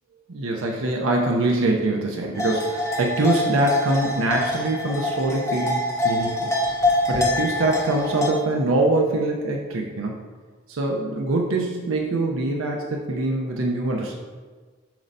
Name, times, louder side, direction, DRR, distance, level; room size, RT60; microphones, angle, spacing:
voice 1, 0.3-6.5 7.1-10.2 10.7-14.1, right 2 dB, 85° right, 0 dB, 0.7 m, -24 dB
sound 1, 2.4-8.3, left 1 dB, 15° left, 0.8 m, -25 dB
7.4 x 2.7 x 5.3 m, 1.4 s
head